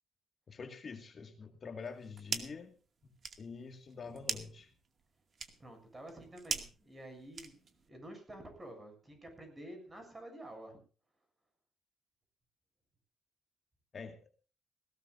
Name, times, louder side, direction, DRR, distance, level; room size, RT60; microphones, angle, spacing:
voice 1, 0.5-2.8 3.0-3.1 3.4-4.7 13.9-14.2, left 5 dB, 40° left, 6 dB, 2.0 m, -46 dB
sound 1, 1.8-2.7 3.0-7.9, right 5 dB, 40° right, 2.2 m, -42 dB
voice 2, 4.0-4.4 5.6-10.8, right 1 dB, 20° right, 6 dB, 7.2 m, -50 dB
20.5 x 17.5 x 2.6 m, 0.38 s
cardioid pair, 125°, 0 cm